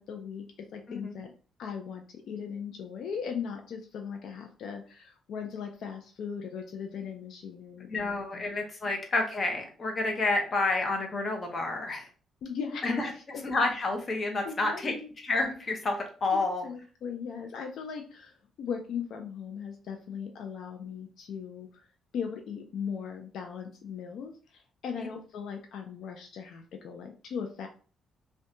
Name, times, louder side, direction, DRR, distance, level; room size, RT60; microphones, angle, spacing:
voice 1, 0.0-1.3 1.6-8.5 12.4-13.4 14.4-15.1 16.3-21.9 22.1-27.7, left 6 dB, 75° left, 3 dB, 0.4 m, -38 dB
voice 2, 7.9-12.1 12.8-13.1 13.4-14.9 15.2-16.0 16.2-16.6 25.0-25.1, left 2 dB, 40° left, 3 dB, 0.7 m, -29 dB
2.6 x 2.2 x 2.5 m, 0.39 s
cardioid pair, 90°, 0 cm